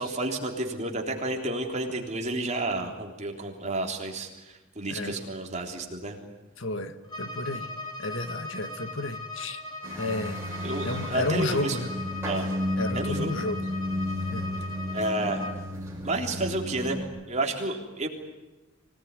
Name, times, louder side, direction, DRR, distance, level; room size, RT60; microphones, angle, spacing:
voice 1, 0.0-6.2 10.6-11.8 12.3-12.6 12.9-13.5 14.9-15.5 16.0-17.0 17.3-18.1, right 2 dB, 35° right, 2 dB, 3.6 m, -31 dB
voice 2, 6.6-7.7 8.0-9.6 10.0-10.4 10.8-11.9 12.8-13.7 14.3-14.5, left 2 dB, 65° left, 9 dB, 1.7 m, -32 dB
Bowed string instrument, 7.0-15.6, left 2 dB, 20° left, 3.1 m, -39 dB
sound 1, 9.8-17.0, left 1 dB, 10° right, 5.8 m, -33 dB
25.5 x 18.5 x 9.8 m, 1.1 s
head